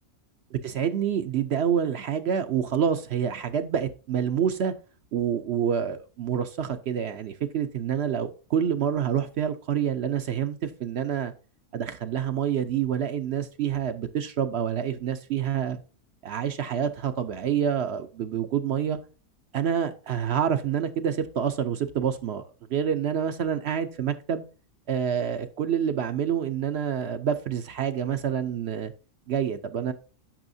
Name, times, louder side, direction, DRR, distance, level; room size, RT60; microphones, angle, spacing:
voice 1, 0.5-4.7 5.1-11.3 11.7-15.8 16.2-19.0 19.5-22.4 22.7-24.4 24.9-28.9 29.3-29.9, right 8 dB, 60° right, 0.8 m, -27 dB
8.8 x 6.3 x 2.6 m
omnidirectional pair, 1.4 m